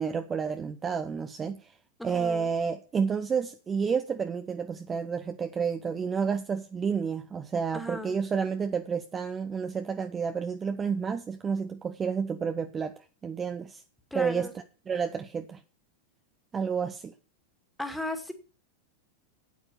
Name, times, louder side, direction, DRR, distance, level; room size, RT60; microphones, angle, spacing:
voice 1, 0.0-1.7 2.0-13.8 14.1-14.5 14.9-15.6 16.5-17.1, right 6 dB, 20° right, 0.8 m, -30 dB
voice 2, 2.0-2.5 7.7-8.2 14.1-14.5 17.8-18.3, left 1 dB, 5° left, 2.1 m, -35 dB
9.3 x 8.9 x 6.9 m
figure-of-eight pair, 90°, 0 cm